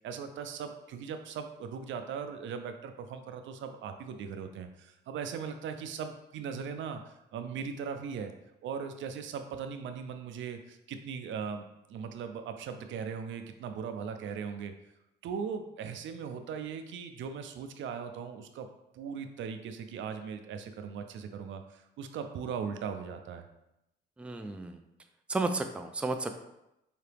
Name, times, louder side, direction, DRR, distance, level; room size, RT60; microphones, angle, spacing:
voice 1, 0.0-8.3 8.6-14.7 15.2-18.7 18.9-23.4, right 6 dB, 70° right, 7 dB, 0.5 m, -39 dB
voice 2, 24.2-24.8 25.3-26.4, right 3 dB, 5° right, 6 dB, 0.3 m, -33 dB
4.9 x 2.8 x 3.4 m, 0.87 s
cardioid pair, 90°, 20 cm